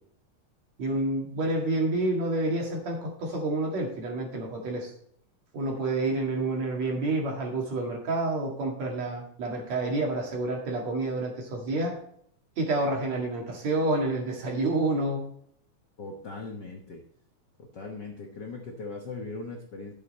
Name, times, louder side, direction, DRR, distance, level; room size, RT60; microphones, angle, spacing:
voice 1, 0.8-4.9 5.5-12.0 12.6-15.3, right 2 dB, 55° right, 1 dB, 3.1 m, -29 dB
voice 2, 16.0-17.0 17.7-19.9, left 3 dB, 65° left, 1 dB, 1.0 m, -39 dB
11.0 x 7.3 x 4.2 m, 0.66 s
omnidirectional pair, 3.7 m